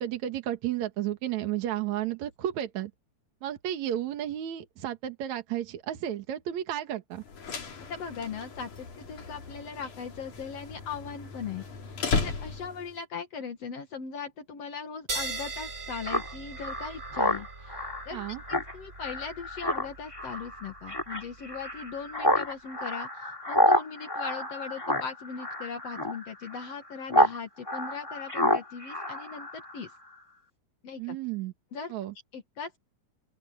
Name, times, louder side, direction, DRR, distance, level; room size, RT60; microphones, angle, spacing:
voice 1, 0.0-2.9 3.4-7.2 18.1-18.4 31.0-31.5 31.9-32.1, right 11 dB, 70° right, 2.8 m, -32 dB
sound 1, 7.2-13.0, left 4 dB, 75° left, 5.2 m, -35 dB
voice 2, 7.9-17.7 18.1-18.3 18.7-29.9 30.8-31.2 31.7-31.9 32.3-32.8, left 6 dB, 60° left, 2.6 m, -39 dB
sound 2, 15.1-22.1, right 3 dB, 30° right, 2.3 m, -41 dB
Speech synthesizer, 16.0-27.4 27.7-29.9, equal, 10° left, 2.4 m, -29 dB
open air
omnidirectional pair, 3.4 m